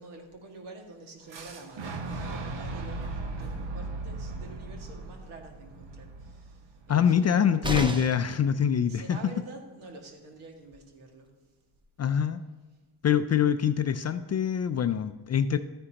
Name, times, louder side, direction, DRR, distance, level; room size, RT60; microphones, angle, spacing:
voice 1, 0.0-7.5 8.9-11.3, right 2 dB, 75° right, 1 dB, 2.1 m, -47 dB
Boom, 1.3-7.2, right 3 dB, 60° right, 1.4 m, -37 dB
voice 2, 6.9-9.2 12.0-12.4 13.0-15.6, left 8 dB, 35° left, 10 dB, 0.4 m, -24 dB
sound 1, 7.6-8.4 10.3-10.4 10.7-10.8, right 1 dB, 10° right, 0.7 m, -32 dB
13.0 x 9.6 x 2.9 m, 1.3 s
cardioid pair, 90°, 50 cm